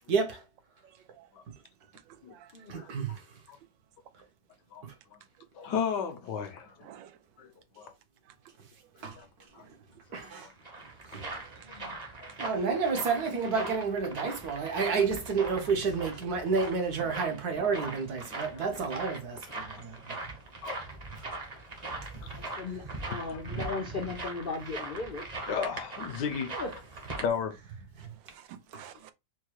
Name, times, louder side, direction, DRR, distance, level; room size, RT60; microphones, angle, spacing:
voice 1, 0.1-0.4 2.7-3.2 4.8-4.9 9.0-9.2 10.1-10.5 11.1-11.2 12.4-20.2, right 5 dB, 60° right, 1.4 m, -30 dB
voice 2, 2.1-2.9 6.8-7.2 11.3-11.5 12.2-12.3 17.3-17.7 28.3-29.1, right 11 dB, 90° right, 1.4 m, -52 dB
voice 3, 5.5-6.9 7.4-7.9 9.2-9.3 9.5-9.6 10.1-10.5 12.2-12.3 14.3-14.4 17.5-17.6 18.2-18.8 19.5-19.8 20.6-20.7 22.2-22.3 23.3-23.8 25.5-26.6 27.2-27.6, left 7 dB, 70° left, 1.4 m, -35 dB
sound 1, 10.3-27.3, right 2 dB, 30° right, 0.9 m, -41 dB
voice 4, 11.6-12.0 22.3-25.2 26.5-26.7, left 4 dB, 55° left, 0.6 m, -37 dB
4.6 x 2.2 x 4.6 m
omnidirectional pair, 2.0 m